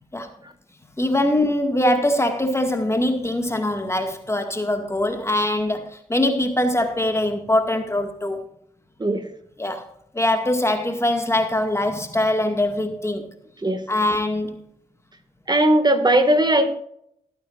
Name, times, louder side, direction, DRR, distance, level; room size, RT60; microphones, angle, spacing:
voice 1, 1.0-8.4 9.6-9.9 10.1-13.2 13.9-14.6, left 1 dB, 15° left, 5 dB, 2.0 m, -22 dB
voice 2, 15.5-16.7, right 1 dB, 25° right, 8 dB, 2.0 m, -18 dB
18.0 x 9.1 x 2.6 m, 0.74 s
hypercardioid pair, 40°, 16 cm